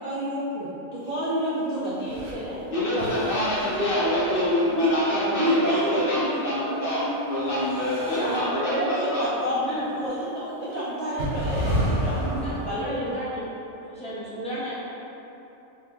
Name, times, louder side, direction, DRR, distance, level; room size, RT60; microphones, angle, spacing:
voice 1, 0.0-2.6 2.9-3.2 4.7-4.9 5.3-6.3 8.7-8.8 9.2-13.1, equal, 85° right, -10 dB, 0.3 m, -28 dB
sound 1, 2.0-2.3 3.0-5.0 7.4-8.4 10.0-10.1 11.2-12.7, equal, 65° right, 0.9 m, -30 dB
voice 2, 2.7-9.3, left 1 dB, 50° left, -9 dB, 0.8 m, -26 dB
voice 3, 8.1-9.2 9.5-9.9 12.4-13.4 13.9-14.7, equal, 5° left, -11 dB, 0.5 m, -32 dB
2.8 x 2.7 x 3.6 m, 3.0 s
omnidirectional pair, 1.4 m